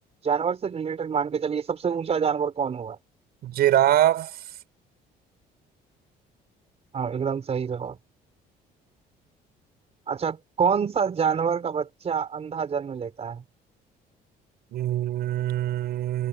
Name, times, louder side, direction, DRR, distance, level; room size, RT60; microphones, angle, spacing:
voice 1, 0.2-3.0 6.9-8.0 10.1-13.4, right 6 dB, 40° right, 4.8 m, -27 dB
voice 2, 3.4-4.4 14.7-16.3, right 12 dB, 70° right, 5.8 m, -23 dB
cardioid pair, 110°, 17 cm